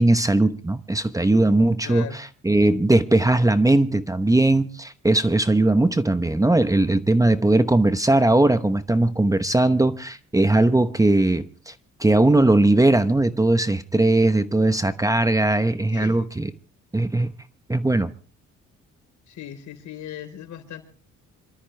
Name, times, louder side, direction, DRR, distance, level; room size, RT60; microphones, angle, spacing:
voice 1, 0.0-2.1 2.4-11.7 12.0-16.5 16.9-17.3 17.7-18.1, right 2 dB, 10° right, 1.0 m, -19 dB
voice 2, 1.8-2.2 15.9-16.3 19.3-20.8, left 10 dB, 70° left, 4.0 m, -37 dB
27.0 x 13.0 x 3.3 m
cardioid pair, 90°, 30 cm